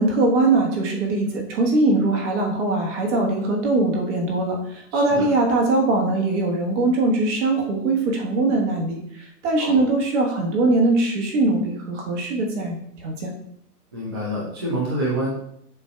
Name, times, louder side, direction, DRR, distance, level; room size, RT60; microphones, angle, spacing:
voice 1, 0.0-13.3, right 2 dB, 45° right, 0 dB, 1.4 m, -21 dB
voice 2, 4.9-5.3 9.6-9.8 13.9-15.3, right 1 dB, 20° right, -6 dB, 0.3 m, -27 dB
6.7 x 2.7 x 2.3 m, 0.71 s
hypercardioid pair, 115°, 48 cm